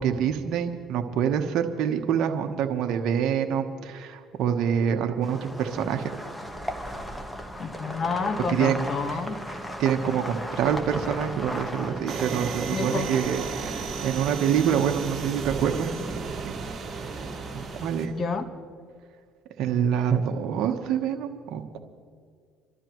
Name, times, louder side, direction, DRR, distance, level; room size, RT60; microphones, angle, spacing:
voice 1, 0.0-6.1 8.5-8.8 9.1-9.2 9.8-15.9 16.5-16.6 17.5-18.1 19.6-21.8, right 8 dB, 70° right, 5 dB, 1.1 m, -26 dB
sound 1, 5.2-17.9, equal, 10° left, 1.3 m, -37 dB
voice 2, 7.6-9.4 12.7-13.1 18.1-18.5, left 4 dB, 40° left, 7 dB, 1.3 m, -29 dB
sound 2, 12.1-18.1, right 5 dB, 45° right, 2.1 m, -34 dB
28.5 x 12.5 x 3.1 m, 2.1 s
supercardioid pair, 85°, 0 cm